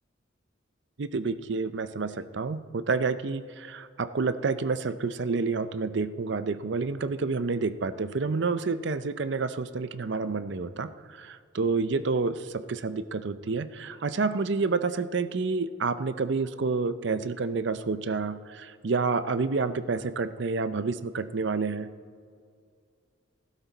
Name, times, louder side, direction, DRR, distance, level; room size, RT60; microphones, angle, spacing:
voice 1, 1.0-21.9, right 4 dB, 60° right, 13 dB, 0.5 m, -29 dB
15.0 x 12.5 x 4.0 m, 2.2 s
head